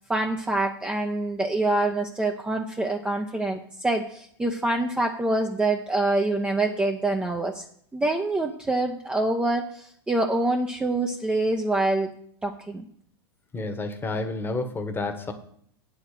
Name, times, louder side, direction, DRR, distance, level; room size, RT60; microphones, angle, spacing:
voice 1, 0.0-7.6 7.9-12.1 12.4-12.8, right 2 dB, 10° right, 2 dB, 0.8 m, -25 dB
voice 2, 13.5-15.3, left 2 dB, 15° left, 7 dB, 1.3 m, -30 dB
8.6 x 5.0 x 7.4 m, 0.63 s
figure-of-eight pair, 95°, 13 cm